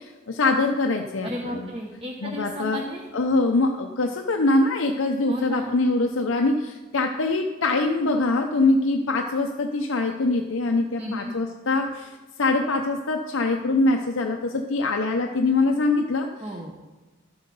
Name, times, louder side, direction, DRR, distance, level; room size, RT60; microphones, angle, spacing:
voice 1, 0.0-1.6 2.2-2.8 3.1-12.1 12.4-16.3, left 2 dB, 85° left, 3 dB, 0.7 m, -23 dB
voice 2, 1.2-3.1 5.3-5.8 11.0-11.3 16.4-16.7, equal, 25° right, 0 dB, 0.9 m, -33 dB
12.0 x 7.9 x 5.3 m, 1.2 s
head